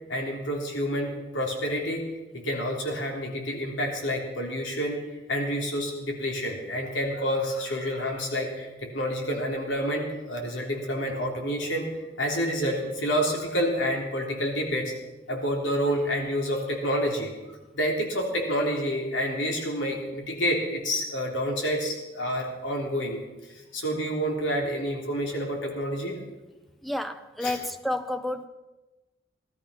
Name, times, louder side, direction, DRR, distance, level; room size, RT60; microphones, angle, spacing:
voice 1, 0.1-2.0 2.3-5.0 5.3-11.8 12.2-14.9 15.3-17.3 17.7-23.2 23.7-26.2 27.4-27.5, equal, 90° left, 0 dB, 3.5 m, -28 dB
voice 2, 26.8-28.5, left 1 dB, ahead, 9 dB, 0.7 m, -30 dB
17.0 x 13.5 x 5.8 m, 1.1 s
head